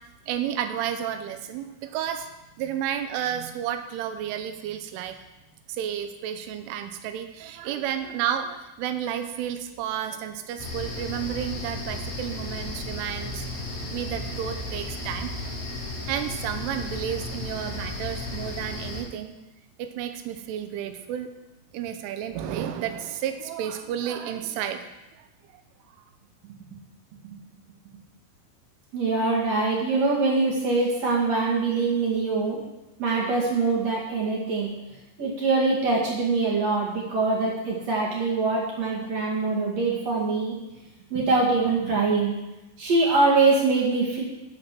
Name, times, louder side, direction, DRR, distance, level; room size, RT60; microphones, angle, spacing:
voice 1, 0.3-2.3 2.6-5.2 5.7-13.5 13.9-15.3 16.1-19.3 19.8-21.3 21.7-24.8, right 10 dB, 85° right, 8 dB, 3.2 m, -31 dB
sound 1, 10.6-19.0, left 2 dB, 50° left, 4.5 m, -34 dB
voice 2, 28.9-32.6 33.0-34.7 35.2-40.6 41.1-42.3 42.8-44.2, right 3 dB, 55° right, -4 dB, 1.8 m, -23 dB
14.0 x 4.7 x 6.0 m, 0.98 s
omnidirectional pair, 5.7 m